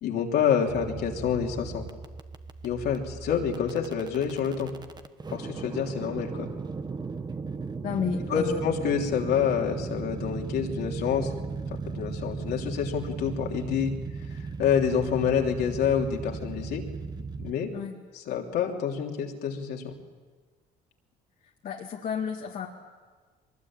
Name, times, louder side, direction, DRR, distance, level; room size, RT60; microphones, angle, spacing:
voice 1, 0.0-1.8 2.6-4.7 5.3-6.5 8.3-11.3 11.7-13.9 14.3-16.8 17.4-17.7 18.1-19.9, left 7 dB, 70° left, 1 dB, 3.2 m, -27 dB
sound 1, 0.7-17.5, right 4 dB, 25° right, 1.4 m, -37 dB
voice 2, 7.8-8.6 17.7-18.0 21.4-22.7, left 7 dB, 55° left, 0 dB, 2.1 m, -32 dB
23.0 x 20.5 x 8.9 m, 1.4 s
cardioid pair, 110°, 17 cm